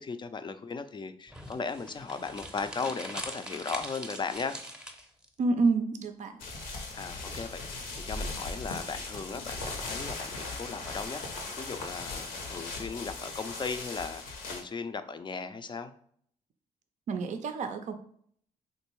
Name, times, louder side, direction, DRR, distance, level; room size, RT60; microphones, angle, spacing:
voice 1, 0.0-4.6 6.9-15.9, left 5 dB, 30° left, 9 dB, 0.4 m, -37 dB
sound 1, 1.3-5.3, equal, 5° right, 0.7 m, -42 dB
voice 2, 5.4-6.3 17.1-17.9, right 3 dB, 50° right, 7 dB, 0.4 m, -28 dB
sound 2, 6.4-14.6, left 3 dB, 85° left, 0.7 m, -38 dB
3.5 x 2.6 x 3.0 m, 0.63 s
hypercardioid pair, 50°, 16 cm